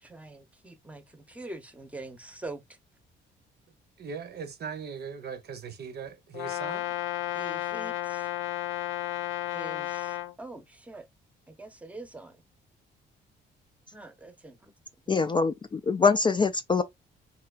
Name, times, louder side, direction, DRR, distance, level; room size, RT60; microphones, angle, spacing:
voice 1, 0.0-2.6 7.3-8.3 9.5-11.1 11.5-12.4 13.9-14.7, right 2 dB, 5° right, 0.7 m, -44 dB
voice 2, 4.0-6.9, right 6 dB, 55° right, 0.7 m, -39 dB
Brass instrument, 6.3-10.3, left 14 dB, 90° left, 0.5 m, -32 dB
voice 3, 15.1-16.8, left 4 dB, 25° left, 0.3 m, -24 dB
3.2 x 2.8 x 2.3 m
cardioid pair, 90°, 20 cm